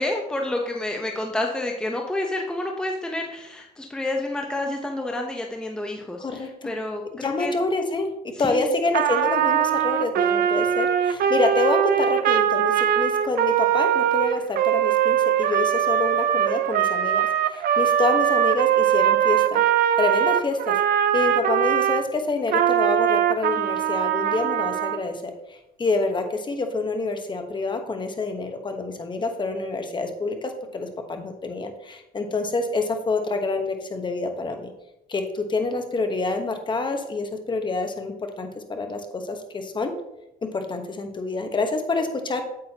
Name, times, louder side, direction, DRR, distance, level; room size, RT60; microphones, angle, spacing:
voice 1, 0.0-7.5 8.4-8.6, left 1 dB, 5° left, 1 dB, 0.8 m, -29 dB
voice 2, 6.2-6.7 7.2-19.6 20.0-20.8 21.1-34.7 35.1-39.9 40.4-42.4, left 3 dB, 25° left, 6 dB, 1.1 m, -27 dB
Trumpet, 8.9-22.0 22.5-25.0, right 10 dB, 60° right, 0.6 m, -21 dB
8.7 x 8.4 x 2.9 m, 0.86 s
cardioid pair, 110°, 17 cm